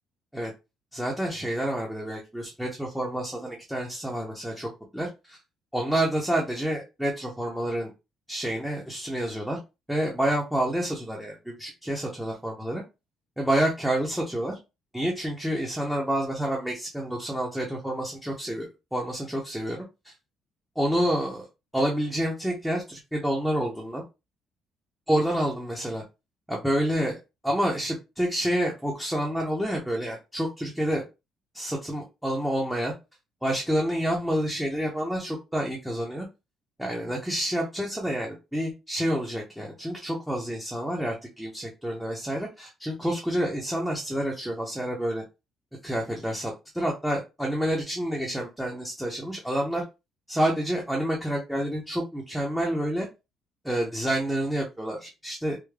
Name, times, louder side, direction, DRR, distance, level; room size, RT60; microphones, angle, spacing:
voice 1, 0.9-5.4 5.7-7.9 8.3-9.6 9.9-12.8 13.4-14.5 14.9-20.1 20.8-21.5 21.7-24.0 25.1-26.0 26.5-27.2 27.4-31.0 31.5-32.9 33.4-36.3 36.8-45.2 45.8-49.8 50.3-53.1 53.6-55.6, right 1 dB, 5° right, -2 dB, 0.7 m, -28 dB
3.5 x 2.2 x 3.2 m, 0.26 s
cardioid pair, 145°, 0 cm